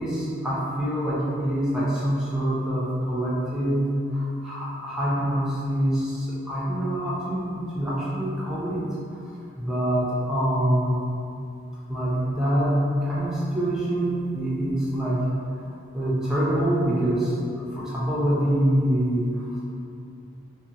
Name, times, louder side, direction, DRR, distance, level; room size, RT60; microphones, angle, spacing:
voice 1, 0.0-3.8 4.1-8.8 9.1-9.2 9.6-11.0 11.9-15.2 15.9-17.3 17.7-19.6, right 1 dB, 5° right, -9 dB, 0.5 m, -25 dB
2.6 x 2.5 x 2.7 m, 2.6 s
head